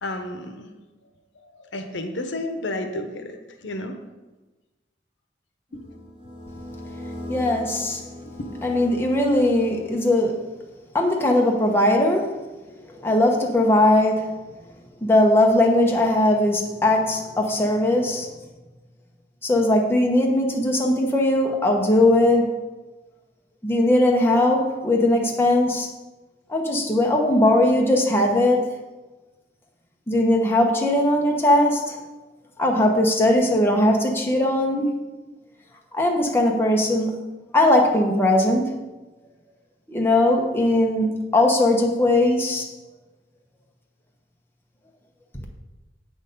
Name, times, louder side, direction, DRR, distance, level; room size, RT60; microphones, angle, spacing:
voice 1, 0.0-0.7 1.4-3.4 3.6-4.0 5.7-5.8, left 1 dB, 80° left, 6 dB, 0.9 m, -31 dB
sound 1, 5.7-10.3, left 1 dB, 25° right, 2.5 m, -38 dB
voice 2, 7.3-8.0 8.6-10.4 10.9-12.3 13.0-14.4 15.0-18.3 19.4-22.6 23.6-25.9 26.5-28.7 30.1-32.0 32.6-34.9 35.9-37.2 37.5-38.8 39.9-42.7, left 1 dB, 10° left, 0 dB, 1.0 m, -19 dB
8.0 x 6.4 x 5.3 m, 1.2 s
head